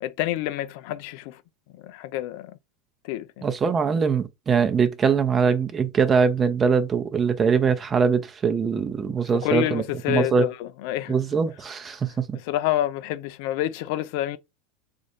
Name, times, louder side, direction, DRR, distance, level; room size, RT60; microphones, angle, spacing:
voice 1, 0.0-1.4 1.7-2.6 3.0-3.5 9.3-11.2 12.3-14.4, left 14 dB, 55° left, 0.3 m, -28 dB
voice 2, 3.4-9.8 10.1-10.4 11.1-12.4, right 6 dB, 25° right, 0.6 m, -22 dB
4.0 x 2.5 x 2.9 m
figure-of-eight pair, 85°, 0 cm